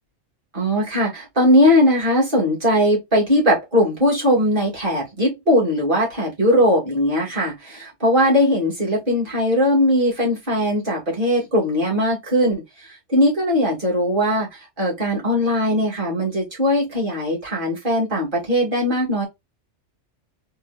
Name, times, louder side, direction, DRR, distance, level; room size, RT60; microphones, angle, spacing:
voice 1, 0.5-19.2, equal, 45° right, 2.3 m, -19 dB
4.4 x 3.1 x 2.3 m
omnidirectional pair, 1.2 m